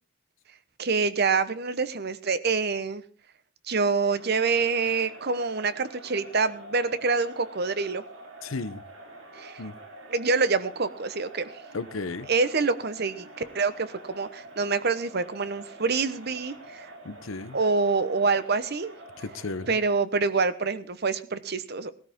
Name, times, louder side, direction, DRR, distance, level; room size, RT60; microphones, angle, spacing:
voice 1, 0.8-3.0 3.7-8.0 9.4-9.6 10.1-11.5 12.3-16.9 17.5-18.9 19.7-21.9, right 4 dB, 55° right, 1.0 m, -26 dB
Crowd, 4.0-20.1, right 1 dB, 80° right, 3.9 m, -47 dB
voice 2, 8.4-8.8 9.6-9.7 11.7-12.3 17.0-17.6 19.2-19.8, left 3 dB, 85° left, 0.9 m, -34 dB
18.5 x 13.0 x 3.7 m
head